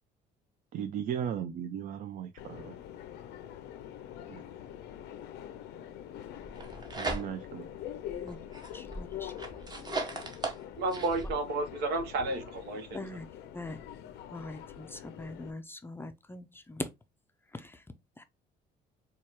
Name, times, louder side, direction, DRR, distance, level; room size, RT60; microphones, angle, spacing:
voice 1, 0.7-2.8 4.3-4.4 6.9-7.7, right 9 dB, 55° right, 0.4 m, -36 dB
Subway metro underground, 2.4-15.5, left 10 dB, 85° left, 0.5 m, -45 dB
sound 1, 6.4-7.6 8.1-11.3, right 2 dB, 25° right, 0.9 m, -38 dB
voice 2, 8.7-9.3 9.8-10.0 12.9-13.3 13.5-13.8 14.3-16.9 17.5-17.8 18.2-18.3, left 2 dB, 15° left, 0.4 m, -42 dB
voice 3, 10.8-13.1, right 3 dB, 80° right, 0.9 m, -32 dB
4.4 x 2.3 x 2.9 m
cardioid pair, 110°, 17 cm